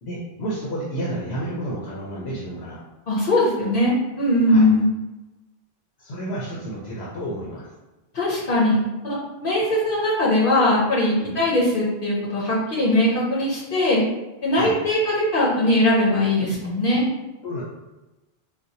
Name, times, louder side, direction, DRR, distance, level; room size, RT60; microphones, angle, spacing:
voice 1, 0.0-2.8 4.5-4.7 6.0-7.7 11.1-11.4 14.5-14.8 16.5-16.6 17.4-17.6, right 1 dB, 90° left, -5 dB, 1.0 m, -31 dB
voice 2, 3.1-4.9 8.1-14.0 14.4-17.0, left 1 dB, 60° left, -5 dB, 0.9 m, -20 dB
4.1 x 2.3 x 2.7 m, 1.1 s
omnidirectional pair, 1.0 m